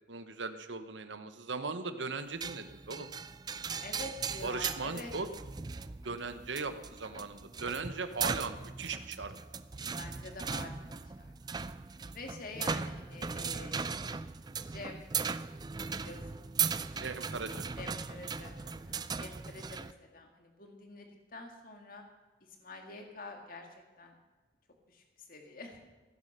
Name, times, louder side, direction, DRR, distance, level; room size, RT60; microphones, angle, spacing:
voice 1, 0.1-3.1 4.4-5.3 6.0-9.3 17.0-17.6, right 4 dB, 85° right, 10 dB, 1.1 m, -38 dB
sound 1, 2.4-19.9, right 5 dB, 20° right, 0.4 m, -38 dB
voice 2, 3.8-5.1 10.0-10.8 11.2-11.3 12.1-14.1 14.7-15.1 16.0-16.5 17.8-22.0 22.6-23.7 24.0-24.2 24.9-25.8, left 2 dB, 50° left, 3 dB, 2.0 m, -47 dB
15.5 x 11.0 x 6.6 m, 1.2 s
head